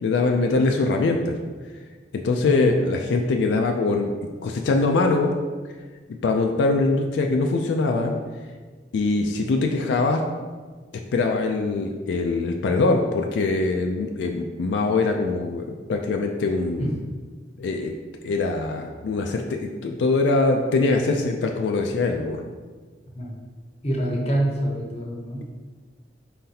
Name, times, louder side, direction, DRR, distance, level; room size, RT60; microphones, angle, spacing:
voice 1, 0.0-1.4 2.1-4.1 4.4-5.3 6.2-8.2 8.9-10.2 11.1-17.0 17.6-17.9 18.2-22.4, left 3 dB, 80° left, 3 dB, 0.3 m, -23 dB
voice 2, 2.4-2.8 16.8-16.9 23.2-23.4 23.8-25.4, right 1 dB, 35° left, -1 dB, 0.7 m, -26 dB
4.2 x 3.9 x 2.7 m, 1.4 s
head